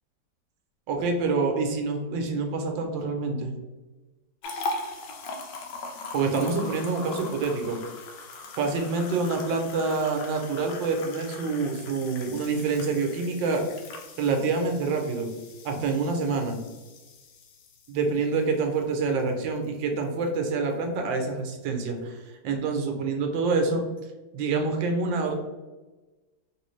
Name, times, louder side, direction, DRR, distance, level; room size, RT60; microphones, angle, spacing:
voice 1, 0.9-3.5 6.1-7.8 8.6-13.6 14.2-15.3 15.6-16.6 17.9-23.8 24.3-25.4, right 4 dB, 85° right, 3 dB, 1.4 m, -27 dB
sound 1, 4.4-19.7 20.0-20.2 20.7-20.8, left 3 dB, 75° left, 1.2 m, -40 dB
3.1 x 3.0 x 3.1 m, 1.2 s
omnidirectional pair, 2.0 m